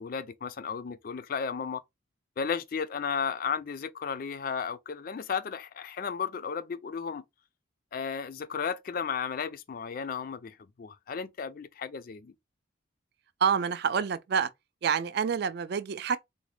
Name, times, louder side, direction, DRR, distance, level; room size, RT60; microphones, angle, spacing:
voice 1, 0.0-1.8 2.4-7.2 7.9-12.3, left 6 dB, 45° left, 0.3 m, -34 dB
voice 2, 13.4-14.5 14.8-16.2, right 6 dB, 50° right, 0.3 m, -27 dB
3.9 x 2.1 x 3.1 m
head